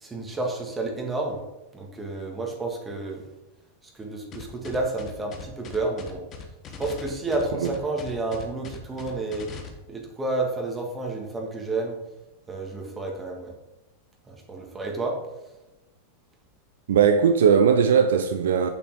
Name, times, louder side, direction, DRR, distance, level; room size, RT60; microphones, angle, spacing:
voice 1, 0.0-1.4 1.7-3.2 3.9-6.2 6.8-9.5 9.9-12.0 12.5-13.5 14.3-15.2, right 2 dB, 15° right, 1.9 m, -30 dB
sound 1, 4.3-9.7, left 6 dB, 30° left, 1.3 m, -40 dB
voice 2, 16.9-18.7, right 7 dB, 60° right, 0.5 m, -19 dB
8.5 x 6.6 x 3.7 m
figure-of-eight pair, 90°, 0 cm